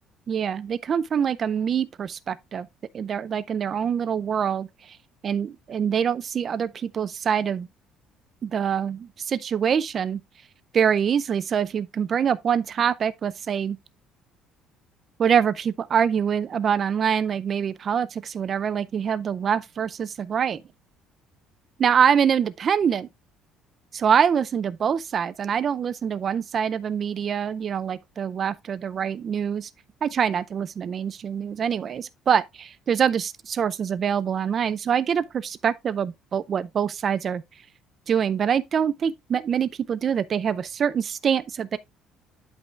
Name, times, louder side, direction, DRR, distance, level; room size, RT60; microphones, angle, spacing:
voice 1, 0.3-2.7 2.9-4.7 5.2-7.7 8.4-10.2 10.7-13.8 15.2-20.6 21.8-23.1 23.9-29.7 30.0-37.4 38.1-41.8, right 7 dB, 30° right, 0.5 m, -25 dB
11.0 x 5.4 x 2.4 m
cardioid pair, 170°, 0 cm